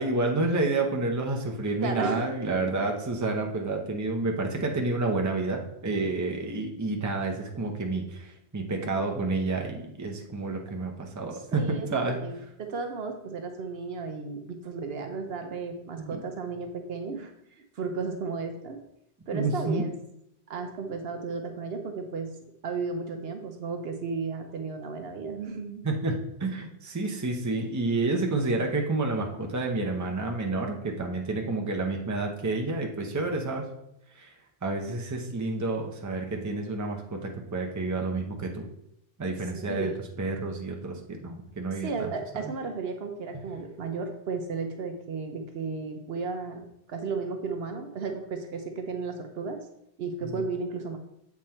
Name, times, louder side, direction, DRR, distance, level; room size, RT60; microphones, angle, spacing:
voice 1, 0.0-11.6 11.9-12.2 16.0-16.2 19.3-19.8 25.8-33.7 34.2-34.3 34.6-38.6 39.2-39.9 40.2-42.1, right 3 dB, 20° right, 2 dB, 0.7 m, -29 dB
voice 2, 1.8-2.3 11.3-18.8 19.3-19.9 20.5-22.3 22.6-25.8 39.5-40.0 41.7-49.6 50.0-51.0, right 4 dB, 70° right, 4 dB, 1.0 m, -34 dB
7.6 x 3.6 x 4.3 m, 0.80 s
omnidirectional pair, 1.1 m